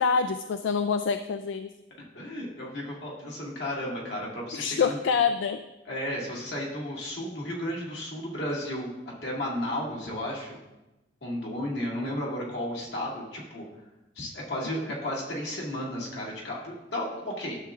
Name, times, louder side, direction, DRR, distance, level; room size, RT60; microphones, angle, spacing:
voice 1, 0.0-1.7 4.5-5.6, left 6 dB, 85° left, 9 dB, 0.3 m, -26 dB
voice 2, 2.1-5.0 5.9-8.9 9.2-10.6 11.2-13.7 14.2-17.6, left 1 dB, 65° left, -3 dB, 2.1 m, -33 dB
12.0 x 7.2 x 2.5 m, 1.0 s
head